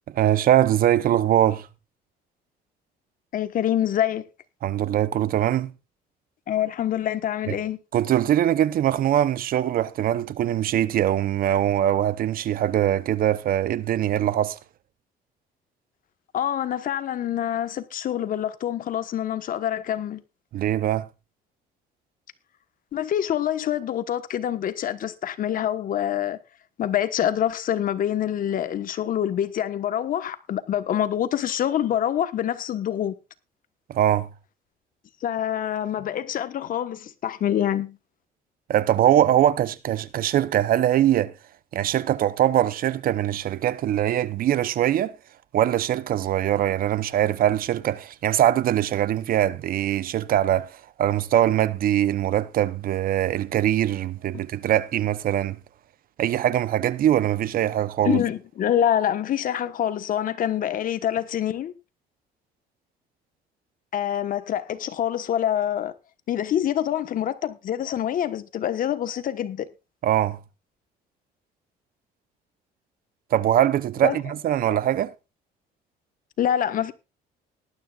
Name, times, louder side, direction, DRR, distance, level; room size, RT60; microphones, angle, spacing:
voice 1, 0.1-1.7 4.6-5.7 7.5-7.6 7.9-14.6 20.5-21.1 33.9-34.3 38.7-41.3 41.7-45.2 45.5-55.6 56.2-58.2 70.0-70.4 73.3-75.1, right 11 dB, 60° right, 0.8 m, -22 dB
voice 2, 3.3-4.2 6.5-7.8 16.3-20.2 22.9-26.4 26.8-33.1 35.2-38.0 58.0-61.7 63.9-65.9 66.3-69.7 74.0-74.2 76.4-76.9, left 10 dB, 55° left, 1.3 m, -26 dB
19.0 x 12.0 x 2.4 m
cardioid pair, 110°, 17 cm